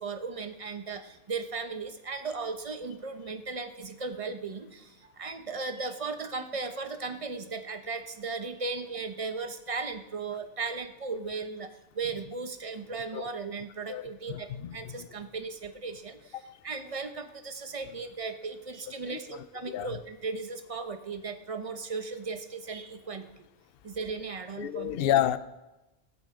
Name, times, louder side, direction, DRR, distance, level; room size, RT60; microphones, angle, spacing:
voice 1, 0.0-11.7 11.9-23.5 23.8-24.9, right 4 dB, 30° right, 8 dB, 0.9 m, -36 dB
voice 2, 13.9-15.1 16.3-16.4 19.1-20.0 24.6-25.4, left 11 dB, 60° left, 14 dB, 0.7 m, -30 dB
16.5 x 13.5 x 3.7 m, 1.0 s
omnidirectional pair, 1.2 m